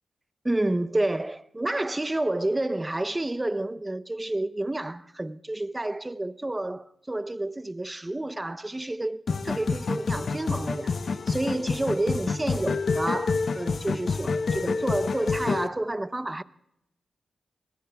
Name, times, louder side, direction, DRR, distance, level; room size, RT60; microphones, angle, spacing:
voice 1, 0.4-16.4, right 1 dB, 15° right, 0.7 m, -29 dB
sound 1, 9.3-15.7, left 4 dB, 60° left, 0.7 m, -28 dB
27.5 x 21.0 x 2.3 m
cardioid pair, 85°, 0 cm